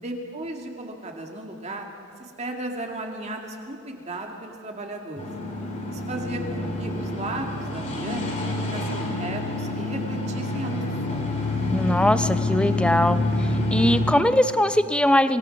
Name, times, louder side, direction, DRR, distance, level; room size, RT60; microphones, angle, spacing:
voice 1, 0.0-1.9 2.2-5.3 5.9-11.3, right 1 dB, 30° right, 2 dB, 2.2 m, -35 dB
sound 1, 5.2-14.1, left 2 dB, 35° left, 3.3 m, -27 dB
voice 2, 11.7-15.4, left 1 dB, 5° left, 11 dB, 0.6 m, -21 dB
26.0 x 18.5 x 5.9 m, 2.4 s
head